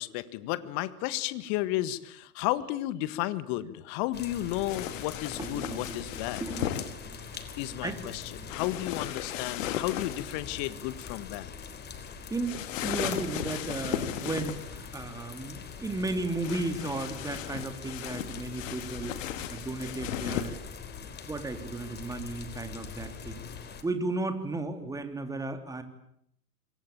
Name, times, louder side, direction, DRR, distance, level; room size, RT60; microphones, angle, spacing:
voice 1, 0.0-6.4 7.6-11.5, left 15 dB, 40° left, 15 dB, 1.8 m, -33 dB
sound 1, 4.1-23.8, left 6 dB, 20° left, 3.5 m, -43 dB
sound 2, 4.7-6.9 8.5-10.3 12.4-14.7 16.4-20.6, left 11 dB, 55° left, 2.6 m, -36 dB
voice 2, 5.4-6.0 6.4-7.2 7.8-8.0 8.4-8.5 12.3-19.2 19.5-20.6 21.3-23.4 23.8-25.8, right 2 dB, 5° right, 7 dB, 3.4 m, -34 dB
26.5 x 24.0 x 8.9 m, 0.73 s
hypercardioid pair, 110°, 47 cm